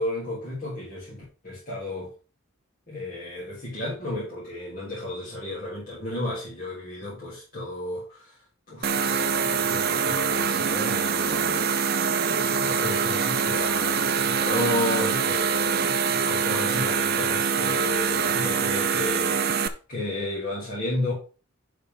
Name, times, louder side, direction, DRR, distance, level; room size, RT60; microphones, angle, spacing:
voice 1, 0.0-2.1 2.9-8.4 8.7-21.1, left 1 dB, 40° left, 3.4 m, -33 dB
sound 1, 8.8-19.7, right 6 dB, 45° right, 0.6 m, -24 dB
11.0 x 5.1 x 3.8 m
head